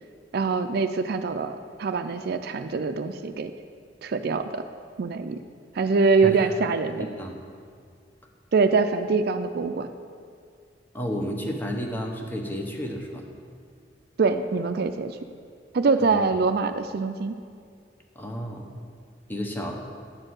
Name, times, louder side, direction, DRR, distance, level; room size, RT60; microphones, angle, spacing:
voice 1, 0.3-3.5 4.0-4.6 5.0-5.4 5.7-7.1 8.5-9.9 14.2-15.2 15.7-17.4, right 4 dB, 60° right, 9 dB, 0.4 m, -24 dB
voice 2, 7.0-7.4 10.9-13.3 16.0-16.1 18.1-18.7 19.3-19.8, equal, 10° left, 1 dB, 1.0 m, -32 dB
11.5 x 4.5 x 7.8 m, 2.2 s
head